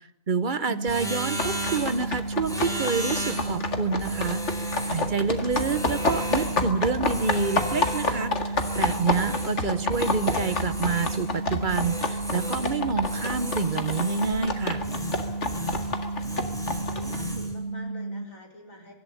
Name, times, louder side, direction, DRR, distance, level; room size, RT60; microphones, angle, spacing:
voice 1, 0.3-14.8, right 5 dB, 40° right, 14 dB, 1.0 m, -28 dB
sound 1, 0.7-18.3, right 3 dB, 80° right, 1.4 m, -33 dB
sound 2, 0.9-2.1 2.4-3.6 4.0-5.1 5.5-6.7 7.0-8.2 8.5-9.6 9.9-11.3 11.7-12.8 13.0-14.5 14.8-16.0 16.2-17.5, equal, ahead, 3.6 m, -36 dB
sound 3, 1.4-17.2, left 3 dB, 60° left, 2.2 m, -29 dB
voice 2, 15.2-16.6 16.9-18.9, equal, 85° left, 3 dB, 4.5 m, -48 dB
24.0 x 13.0 x 10.0 m, 0.85 s
omnidirectional pair, 1.4 m